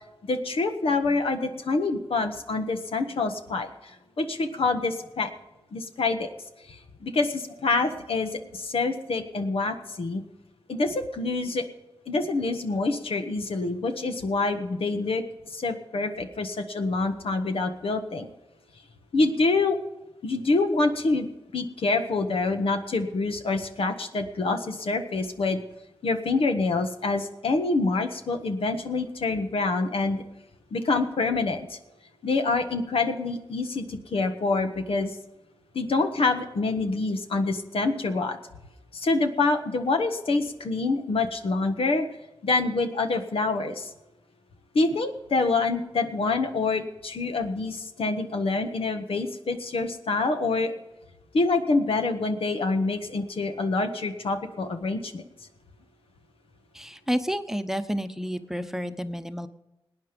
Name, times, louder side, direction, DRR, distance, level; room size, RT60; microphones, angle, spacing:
voice 1, 0.2-5.3 5.7-6.3 6.7-10.2 10.7-11.6 12.1-15.2 15.5-18.3 19.1-19.8 20.2-25.6 26.0-30.2 30.7-31.8 32.2-35.2 35.7-38.4 38.9-42.1 42.4-43.9 44.7-50.7 51.3-55.2, left 3 dB, 80° left, 6 dB, 1.4 m, -26 dB
voice 2, 56.7-59.5, equal, 5° right, 9 dB, 0.9 m, -30 dB
18.5 x 9.5 x 5.2 m, 1.0 s
cardioid pair, 55°, 9 cm